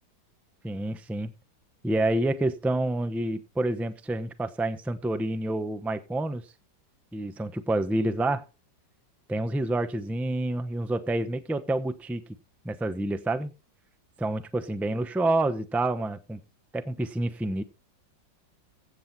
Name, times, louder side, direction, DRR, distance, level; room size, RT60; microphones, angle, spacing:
voice 1, 0.6-1.3 1.8-6.4 7.1-8.4 9.3-12.2 12.6-13.5 14.2-16.4 16.7-17.6, right 2 dB, ahead, 11 dB, 0.3 m, -28 dB
15.5 x 7.7 x 4.2 m, 0.30 s
omnidirectional pair, 2.0 m